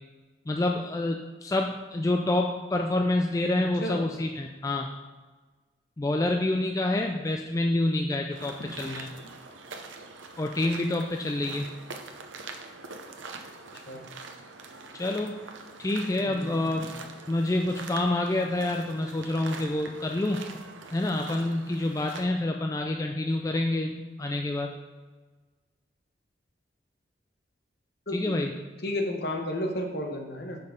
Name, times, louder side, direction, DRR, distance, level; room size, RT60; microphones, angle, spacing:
voice 1, 0.5-4.9 6.0-9.1 10.4-11.7 14.9-15.4 15.8-16.8 17.3-20.5 20.9-24.7 28.1-28.5, left 2 dB, 20° left, 3 dB, 0.3 m, -27 dB
sound 1, 8.3-22.3, right 4 dB, 85° right, 0.7 m, -44 dB
voice 2, 16.2-16.9 28.1-28.4 28.8-30.6, left 1 dB, 55° left, 2 dB, 1.0 m, -33 dB
6.2 x 5.4 x 5.1 m, 1.3 s
head